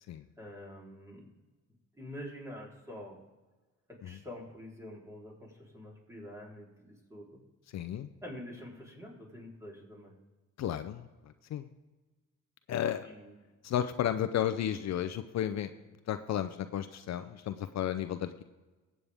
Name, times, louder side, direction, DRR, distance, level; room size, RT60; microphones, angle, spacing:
voice 1, 0.4-1.3 1.9-3.2 3.9-7.4 8.2-10.1 13.0-13.3, left 1 dB, 10° right, -3 dB, 3.8 m, -46 dB
voice 2, 7.7-8.1 10.6-11.0 11.5-11.6 12.7-13.1 13.6-15.7 16.1-18.4, left 10 dB, 60° left, 10 dB, 0.6 m, -33 dB
19.0 x 8.4 x 3.6 m, 1.2 s
cardioid pair, 90°, 30 cm